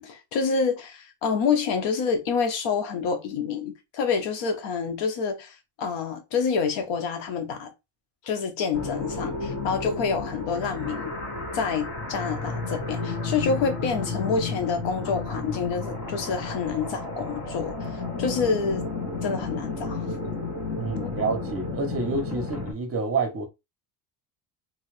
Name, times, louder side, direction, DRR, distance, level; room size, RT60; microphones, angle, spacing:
voice 1, 0.0-7.7 8.2-11.1 11.5-18.9 19.2-20.3 21.0-21.1, left 5 dB, 80° left, 1.2 m, -28 dB
sound 1, 8.7-22.7, left 3 dB, 35° left, 1.8 m, -32 dB
voice 2, 20.8-23.5, right 4 dB, 30° right, 1.1 m, -28 dB
3.6 x 2.8 x 3.3 m
cardioid pair, 135°, 45 cm